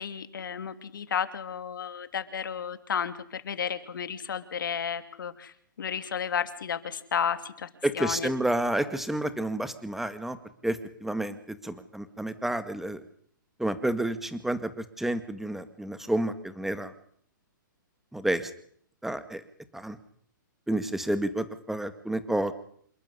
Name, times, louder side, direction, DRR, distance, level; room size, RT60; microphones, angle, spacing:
voice 1, 0.0-7.7 7.9-8.3, left 7 dB, 75° left, 11 dB, 2.7 m, -32 dB
voice 2, 7.8-10.4 10.6-13.0 13.6-16.9 18.1-18.5 19.0-19.4 19.7-20.0 20.7-22.5, right 1 dB, 5° right, 12 dB, 1.9 m, -30 dB
27.5 x 12.5 x 9.8 m, 0.63 s
hypercardioid pair, 130°, 11 cm